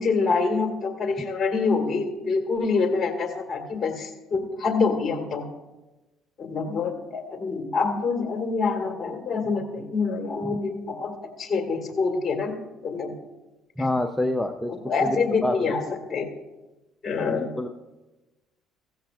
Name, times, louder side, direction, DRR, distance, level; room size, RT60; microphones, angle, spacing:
voice 1, 0.0-5.4 6.4-12.5 12.8-13.1 14.8-15.8 16.1-16.3 17.0-17.5, left 4 dB, 35° left, 3 dB, 2.1 m, -26 dB
voice 2, 13.8-14.7 15.0-15.7 17.3-17.7, left 1 dB, 5° left, 5 dB, 0.7 m, -27 dB
15.5 x 15.5 x 2.5 m, 1.1 s
supercardioid pair, 80°, 0 cm